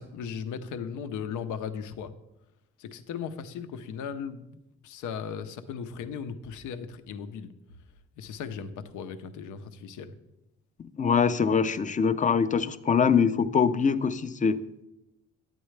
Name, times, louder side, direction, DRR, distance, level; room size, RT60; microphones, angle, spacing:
voice 1, 0.0-2.1 2.8-4.6 4.8-7.5 8.2-10.1, left 7 dB, 85° left, 10 dB, 0.7 m, -37 dB
voice 2, 11.0-14.8, left 6 dB, 25° left, 13 dB, 0.5 m, -24 dB
9.1 x 9.0 x 3.2 m, 0.89 s
cardioid pair, 90°, 30 cm